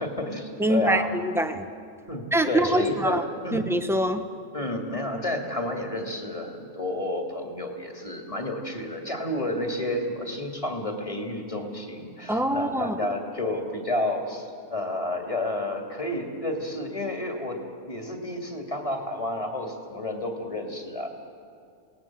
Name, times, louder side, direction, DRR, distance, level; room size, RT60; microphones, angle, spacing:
voice 1, 0.0-1.2 2.1-3.6 4.5-17.6 17.8-21.1, left 1 dB, 25° left, 2 dB, 2.6 m, -30 dB
voice 2, 0.6-1.6 2.3-3.2 3.5-4.2 12.3-13.0, right 1 dB, ahead, 7 dB, 1.0 m, -24 dB
28.0 x 19.0 x 7.6 m, 2.3 s
omnidirectional pair, 1.3 m